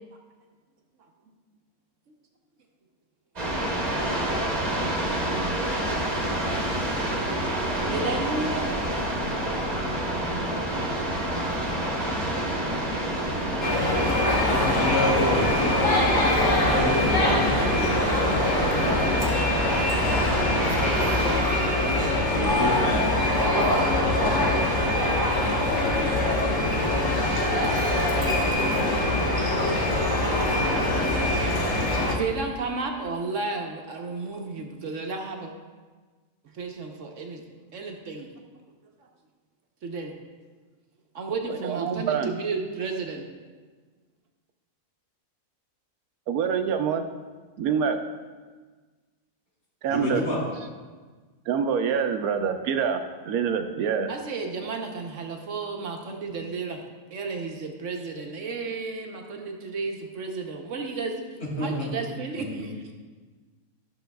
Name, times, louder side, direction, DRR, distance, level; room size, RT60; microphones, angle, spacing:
sound 1, 3.4-21.4, right 1 dB, 30° right, 1.3 m, -28 dB
voice 1, 7.9-8.7 32.1-35.5 36.5-37.4 37.7-38.3 39.8-40.1 41.1-43.3 54.1-56.8 57.1-61.2 61.6-62.7, right 4 dB, 60° right, 2 dB, 1.1 m, -32 dB
sound 2, 13.6-32.1, left 1 dB, 20° left, 0.9 m, -23 dB
voice 2, 14.4-16.2 16.6-19.5 22.3-23.1 23.5-23.7 49.9-50.4 61.6-61.9 62.3-62.6, left 1 dB, 90° left, -6 dB, 3.2 m, -29 dB
voice 3, 19.3-21.5 22.3-23.1 24.0-24.6 25.4-26.8 28.3-28.9 30.4-31.3 31.8-32.3, left 4 dB, 55° left, 2 dB, 1.0 m, -38 dB
voice 4, 41.5-42.3 46.3-47.0 47.6-48.0 49.8-50.2 51.5-53.0 53.2-54.1, right 7 dB, 90° right, 7 dB, 1.2 m, -25 dB
13.5 x 6.2 x 2.3 m, 1.4 s
omnidirectional pair, 1.5 m